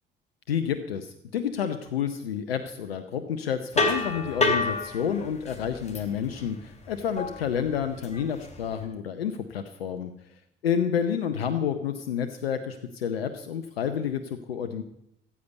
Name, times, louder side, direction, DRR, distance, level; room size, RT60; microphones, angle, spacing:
voice 1, 0.5-10.1 10.6-14.8, left 8 dB, 85° left, 9 dB, 0.7 m, -29 dB
sound 1, 3.7-8.9, left 3 dB, 25° left, 3.3 m, -29 dB
14.5 x 8.4 x 8.0 m, 0.78 s
figure-of-eight pair, 50°, 29 cm